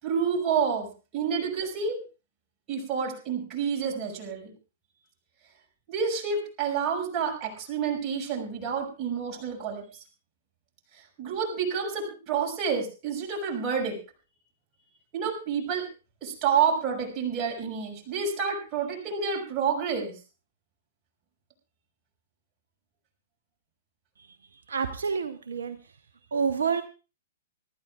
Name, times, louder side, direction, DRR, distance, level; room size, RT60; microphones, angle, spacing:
voice 1, 0.0-2.0 2.7-4.5 5.9-9.8 11.2-14.0 15.1-15.9 16.2-20.1, right 6 dB, 25° right, -2 dB, 5.9 m, -29 dB
voice 2, 24.2-25.9 26.3-26.8, right 6 dB, 70° right, 9 dB, 0.9 m, -29 dB
24.5 x 13.5 x 2.5 m, 0.33 s
figure-of-eight pair, 110°, 0 cm